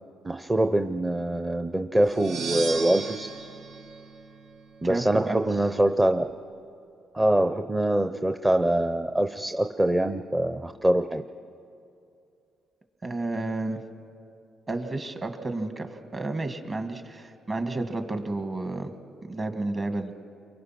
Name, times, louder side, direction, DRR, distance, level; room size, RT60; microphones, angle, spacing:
voice 1, 0.2-3.3 4.8-6.2 7.1-11.2, right 1 dB, 15° right, 8 dB, 0.7 m, -24 dB
sound 1, 2.0-4.9, right 5 dB, 85° right, 1.7 m, -36 dB
voice 2, 4.9-5.4 13.0-13.8 14.7-18.9 19.2-20.1, right 2 dB, 35° right, 6 dB, 2.1 m, -31 dB
29.5 x 23.5 x 6.0 m, 2.6 s
cardioid pair, 90°, 0 cm